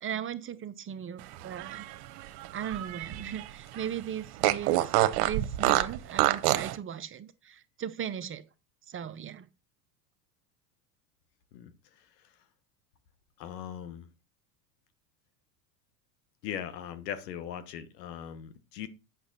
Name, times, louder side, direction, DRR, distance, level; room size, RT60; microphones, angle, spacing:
voice 1, 0.0-1.9 2.5-8.4 8.9-9.5, right 9 dB, 25° right, 0.6 m, -38 dB
Fart, 1.4-3.5 3.8-3.9 4.4-6.8, right 15 dB, 65° right, 0.9 m, -27 dB
voice 2, 13.4-14.1 16.4-18.9, left 9 dB, 75° left, 1.3 m, -39 dB
7.9 x 5.9 x 4.0 m
hypercardioid pair, 90°, 49 cm